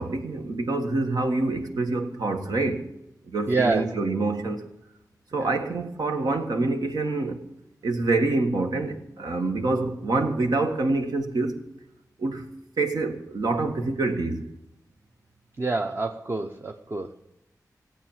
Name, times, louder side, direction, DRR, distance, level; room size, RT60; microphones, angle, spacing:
voice 1, 0.0-2.9 3.3-4.6 5.3-7.4 7.8-11.6 12.2-12.5 12.8-14.4, right 3 dB, 85° right, 1.8 m, -26 dB
voice 2, 3.5-3.9 5.4-5.6 15.6-17.2, right 3 dB, 35° right, 0.8 m, -27 dB
17.5 x 8.6 x 7.4 m
wide cardioid pair, 125°, 7 cm